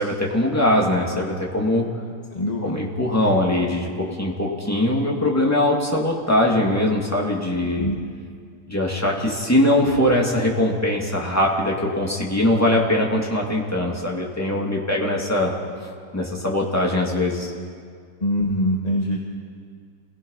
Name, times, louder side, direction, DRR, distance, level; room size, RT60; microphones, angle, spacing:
voice 1, 0.0-1.9 2.6-7.9 8.7-15.5 16.1-17.5, left 1 dB, 10° left, -2 dB, 2.6 m, -21 dB
voice 2, 2.3-2.8 7.8-8.0 18.2-19.2, equal, 25° left, -1 dB, 1.4 m, -23 dB
27.5 x 17.5 x 5.8 m, 2.1 s
omnidirectional pair, 1.8 m